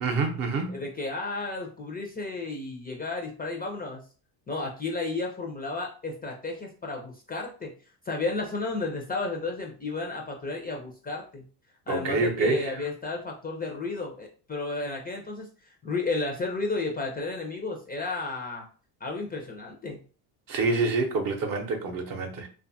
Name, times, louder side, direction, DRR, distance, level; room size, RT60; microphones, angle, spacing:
voice 1, 0.0-0.8 11.9-12.7 20.5-22.5, right 3 dB, 45° right, 0.7 m, -27 dB
voice 2, 0.7-4.0 4.5-7.7 8.1-11.4 11.9-15.5 15.8-18.7 19.0-20.0, left 3 dB, 20° left, 0.4 m, -32 dB
2.6 x 2.3 x 2.6 m
supercardioid pair, 95°, 49 cm